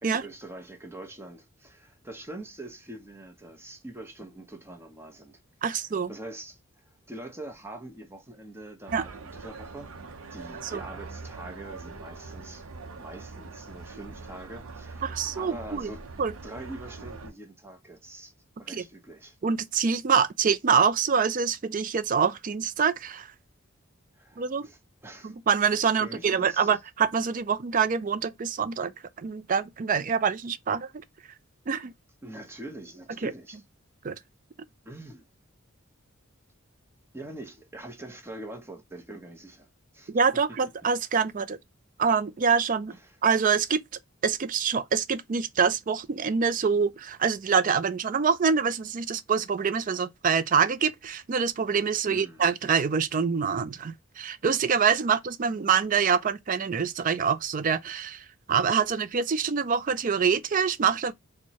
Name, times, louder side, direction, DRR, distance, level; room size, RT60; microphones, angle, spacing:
voice 1, 0.0-6.6 6.9-9.9 10.3-12.7 12.9-16.0 16.4-18.3 18.6-19.4 24.2-25.4 26.0-26.8 32.2-33.6 34.9-35.2 37.1-39.7 39.9-40.6 42.9-43.2 52.0-52.4, right 1 dB, 10° right, 0.7 m, -44 dB
voice 2, 5.6-6.1 8.9-9.0 10.6-10.8 15.0-15.9 16.2-16.3 18.7-18.8 19.4-23.3 24.4-24.7 25.2-28.9 29.2-30.9 31.7-31.9 33.2-33.3 34.0-34.2 40.1-41.6 42.0-42.9 43.2-43.8 44.2-61.1, right 6 dB, 40° right, 0.4 m, -25 dB
sound 1, 8.9-17.3, right 3 dB, 90° right, 0.7 m, -42 dB
4.4 x 2.2 x 2.8 m
head